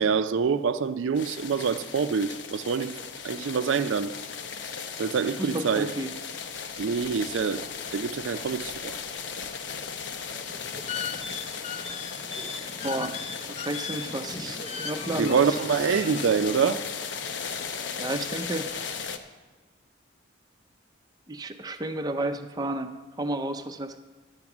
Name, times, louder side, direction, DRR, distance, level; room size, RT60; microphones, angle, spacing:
voice 1, 0.0-3.0 3.2-4.1 5.0-5.9 6.8-7.7 7.9-8.9 15.2-16.8, right 6 dB, 80° right, 0.4 m, -26 dB
sound 1, 1.2-19.2, left 6 dB, 70° left, 0.8 m, -37 dB
voice 2, 5.4-6.1 12.8-13.2 13.5-15.6 18.0-18.7 21.3-24.0, right 1 dB, 20° right, 0.5 m, -32 dB
sound 2, 10.5-16.7, left 5 dB, 35° left, 0.6 m, -38 dB
12.0 x 8.0 x 6.0 m
head